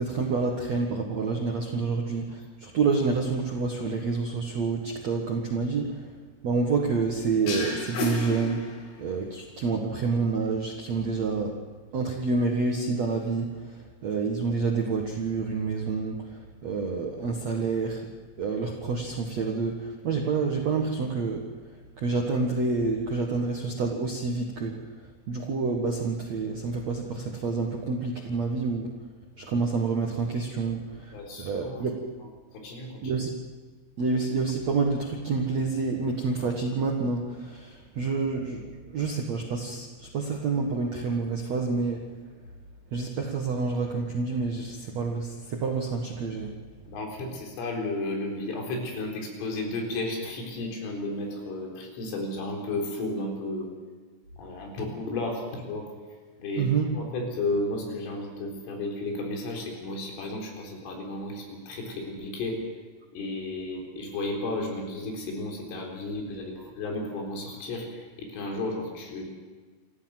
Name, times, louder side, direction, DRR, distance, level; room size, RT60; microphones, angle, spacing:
voice 1, 0.0-6.1 6.4-8.6 9.0-11.6 11.9-18.1 18.4-21.5 22.0-24.8 25.3-28.9 29.4-32.0 33.0-33.3 34.0-42.0 42.9-46.5 56.6-56.9, right 4 dB, 75° right, 1 dB, 1.5 m, -28 dB
sound 1, 7.5-9.2, left 4 dB, 55° left, 4.6 m, -33 dB
voice 2, 31.1-31.9 32.5-33.2 46.9-53.7 54.4-55.9 56.4-62.6 63.1-69.2, left 2 dB, 75° left, 1 dB, 6.4 m, -33 dB
26.5 x 14.5 x 7.7 m, 1.5 s
omnidirectional pair, 5.9 m